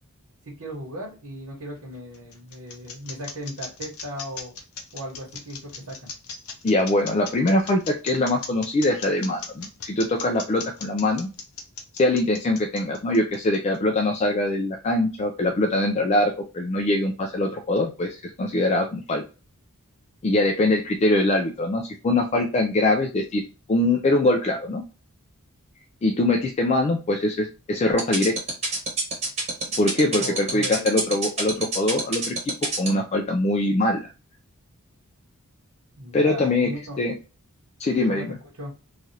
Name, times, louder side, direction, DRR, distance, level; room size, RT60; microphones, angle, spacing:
voice 1, 0.4-4.5 4.9-6.1 30.2-30.9 36.0-37.0 38.1-38.8, equal, 80° right, -4 dB, 1.1 m, -37 dB
sound 1, 1.7-13.8, left 5 dB, 80° left, 0.7 m, -37 dB
voice 2, 6.6-11.3 12.0-19.2 20.2-23.4 23.7-24.8 26.0-28.4 29.8-32.4 32.6-34.1 36.1-36.7 37.0-37.2 37.8-38.3, left 2 dB, 30° left, 3 dB, 0.3 m, -23 dB
sound 2, 28.0-32.9, right 3 dB, 30° right, 1.0 m, -25 dB
3.2 x 2.4 x 2.6 m, 0.32 s
head